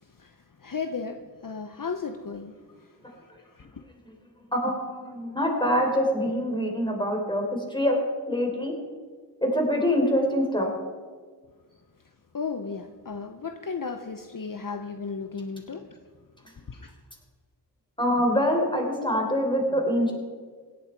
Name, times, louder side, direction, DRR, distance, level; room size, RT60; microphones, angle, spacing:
voice 1, 0.6-2.5 3.1-3.7 12.3-15.9 16.7-16.9, left 5 dB, 50° left, 7 dB, 0.9 m, -35 dB
voice 2, 4.5-8.0 8.3-8.7 9.4-10.7 18.0-20.1, equal, 10° left, 1 dB, 4.0 m, -25 dB
17.0 x 11.5 x 4.7 m, 1.5 s
wide cardioid pair, 45°, 41 cm